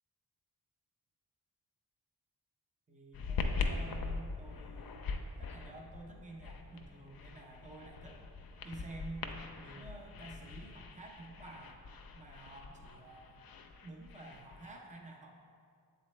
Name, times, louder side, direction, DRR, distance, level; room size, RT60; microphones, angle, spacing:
voice 1, 2.9-5.1 5.4-8.2 8.6-9.3 9.6-11.8 12.2-13.5 13.8-15.3, right 2 dB, 20° right, 0 dB, 0.8 m, -50 dB
sound 1, 3.1-14.7, left 4 dB, 60° left, 0.5 m, -42 dB
7.2 x 4.1 x 3.2 m, 2.3 s
cardioid pair, 55°, 40 cm